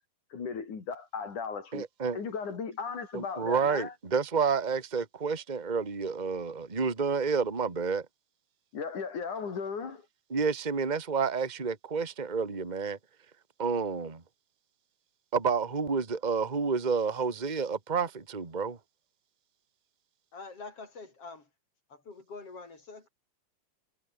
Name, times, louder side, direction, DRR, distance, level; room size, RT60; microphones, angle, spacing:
voice 1, 0.3-1.8 2.1-3.9 8.7-10.0, left 5 dB, 90° left, 5.7 m, -36 dB
voice 2, 1.7-2.2 3.1-8.1 10.3-13.0 13.6-14.2 15.3-18.8, right 5 dB, 15° right, 1.9 m, -29 dB
voice 3, 20.3-21.5 21.9-23.1, left 4 dB, 50° left, 6.0 m, -45 dB
omnidirectional pair, 3.4 m